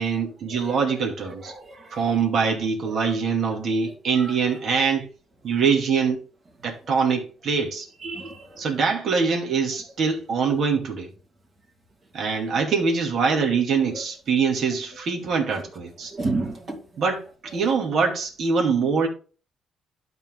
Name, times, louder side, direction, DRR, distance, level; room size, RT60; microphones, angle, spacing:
voice 1, 0.0-1.5 1.9-5.1 5.4-6.2 6.6-7.9 8.6-11.1 12.1-16.1 17.0-19.1, right 5 dB, 65° right, 2.4 m, -23 dB
voice 2, 1.2-2.0 4.1-4.2 8.0-8.6 13.8-14.0 16.1-16.8, right 3 dB, 45° right, 2.6 m, -31 dB
12.0 x 4.4 x 3.7 m
cardioid pair, 90°, 0 cm